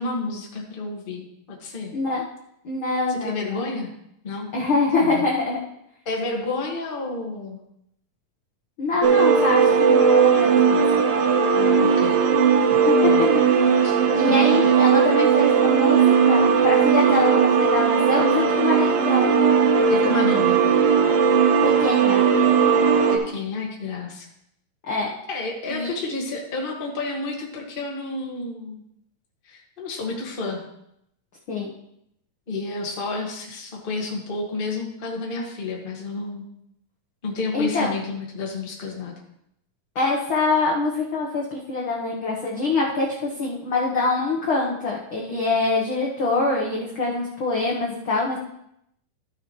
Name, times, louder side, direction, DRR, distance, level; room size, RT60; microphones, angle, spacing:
voice 1, 0.0-1.9 3.2-3.9 4.2-4.5 5.0-5.2 6.0-7.6 11.5-12.3 13.0-13.2 13.8-14.4 19.9-20.6 23.1-24.2 25.3-28.8 29.4-30.6 32.5-36.5 37.2-39.1, left 3 dB, 60° left, -2 dB, 0.5 m, -30 dB
voice 2, 1.9-2.2 2.6-3.6 4.5-5.6 8.8-11.0 12.7-13.3 14.2-19.3 21.6-22.2 24.8-25.1 25.7-25.9 31.5-31.7 37.5-37.9 39.9-48.4, left 3 dB, 85° left, -3 dB, 1.1 m, -24 dB
sound 1, 9.0-23.2, right 6 dB, 90° right, 2.8 m, -18 dB
13.5 x 6.8 x 3.1 m, 0.77 s
omnidirectional pair, 4.1 m